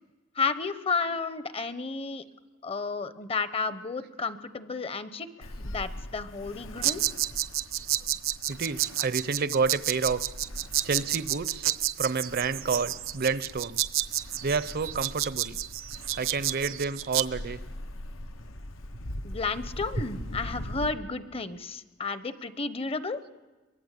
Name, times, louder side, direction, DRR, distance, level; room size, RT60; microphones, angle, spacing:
voice 1, 0.4-2.2 2.6-7.0 19.2-23.2, left 4 dB, 30° left, 13 dB, 0.9 m, -32 dB
Ocean, 5.4-20.9, left 1 dB, 80° left, 1.3 m, -42 dB
sound 1, 6.8-17.2, right 14 dB, 80° right, 0.9 m, -30 dB
voice 2, 8.5-10.3 10.8-11.7 12.0-13.8 14.4-15.6 16.2-17.6, right 4 dB, 50° right, 15 dB, 0.7 m, -29 dB
23.0 x 22.0 x 8.3 m, 1.2 s
head